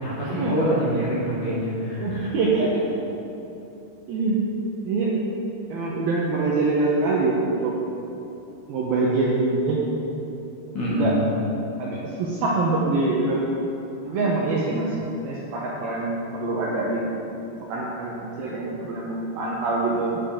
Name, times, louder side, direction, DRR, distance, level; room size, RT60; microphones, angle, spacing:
voice 1, 0.0-2.3 10.7-11.2, equal, 55° left, -8 dB, 2.7 m, -25 dB
voice 2, 2.0-2.7 4.1-4.4 4.9-5.1 5.7-7.4 7.6-7.7 8.7-9.8 10.9-11.1 11.8-13.4 14.0-14.9 15.2-17.1 17.7-20.2, right 3 dB, 75° right, -5 dB, 2.2 m, -24 dB
9.1 x 8.4 x 3.7 m, 2.9 s
omnidirectional pair, 5.2 m